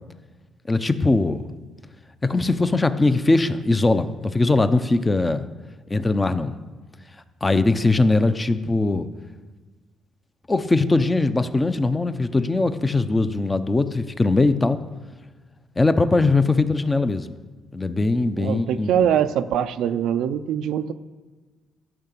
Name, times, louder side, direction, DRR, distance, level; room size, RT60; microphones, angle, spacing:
voice 1, 0.7-1.4 2.2-5.4 5.9-6.5 7.4-9.1 10.5-14.8 15.8-17.4 17.7-19.1, left 2 dB, 20° left, 11 dB, 0.7 m, -20 dB
voice 2, 18.4-20.9, right 9 dB, 80° right, 9 dB, 0.5 m, -23 dB
12.5 x 5.8 x 8.3 m, 1.3 s
cardioid pair, 85°, 0 cm